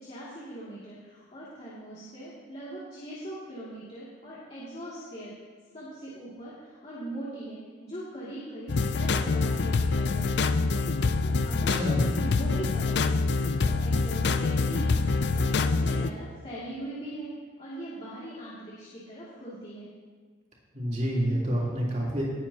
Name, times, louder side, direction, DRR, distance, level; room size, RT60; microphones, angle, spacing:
voice 1, 0.0-5.3 5.7-10.8 11.2-13.4 13.6-17.3 17.6-19.9, right 1 dB, 35° left, -9 dB, 2.5 m, -41 dB
sound 1, 8.7-16.1, left 3 dB, 65° left, 0.5 m, -25 dB
voice 2, 11.7-12.1 20.7-22.3, equal, 40° right, -5 dB, 3.4 m, -28 dB
19.5 x 9.3 x 2.9 m, 1.5 s
head